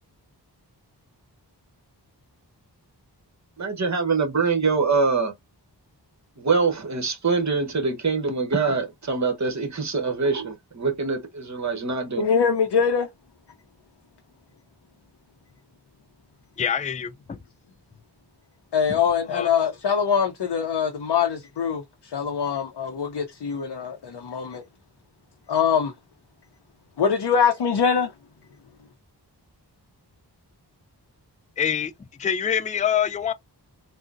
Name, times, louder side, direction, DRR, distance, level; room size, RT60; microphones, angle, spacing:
voice 1, 3.6-5.3 6.4-12.3, right 4 dB, 40° right, 0.9 m, -24 dB
voice 2, 12.2-13.1 18.7-24.6 25.5-25.9 27.0-28.1, left 6 dB, 70° left, 0.6 m, -23 dB
voice 3, 16.6-17.4 18.9-19.0 19.3-19.5 31.6-31.9 32.2-33.3, left 8 dB, 20° left, 0.3 m, -25 dB
3.7 x 2.0 x 2.4 m
wide cardioid pair, 40°, 42 cm